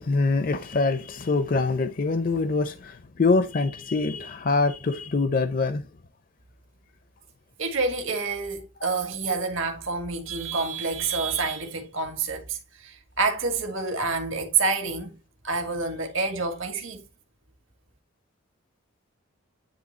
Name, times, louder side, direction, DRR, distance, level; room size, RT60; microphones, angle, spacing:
voice 1, 0.0-5.8, left 3 dB, 40° left, 0.5 m, -24 dB
voice 2, 7.6-12.6 12.8-15.1 15.4-17.0, right 4 dB, 75° right, 1.8 m, -28 dB
9.6 x 3.3 x 4.1 m
head